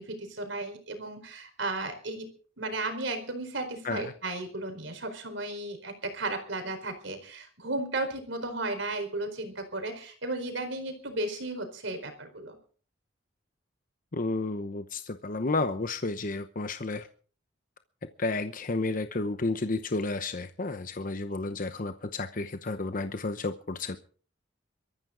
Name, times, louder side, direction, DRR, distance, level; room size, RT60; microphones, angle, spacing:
voice 1, 0.0-2.3 2.6-12.6, right 2 dB, 70° right, 7 dB, 4.4 m, -34 dB
voice 2, 14.1-17.1 18.2-24.0, left 3 dB, 45° left, 9 dB, 0.8 m, -31 dB
22.5 x 14.0 x 3.9 m, 0.42 s
head